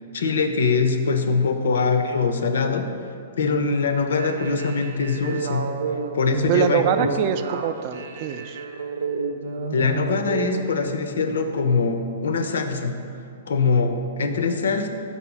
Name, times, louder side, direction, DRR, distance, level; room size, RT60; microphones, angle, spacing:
voice 1, 0.1-3.1 3.4-5.8 6.1-7.1 9.7-13.0 13.5-14.9, left 4 dB, 90° left, 7 dB, 0.6 m, -23 dB
sound 1, 4.0-10.7, right 5 dB, 75° right, 0.6 m, -31 dB
voice 2, 6.5-8.6, right 8 dB, 35° right, 10 dB, 0.3 m, -24 dB
5.4 x 4.2 x 5.9 m, 2.4 s
hypercardioid pair, 160°, 0 cm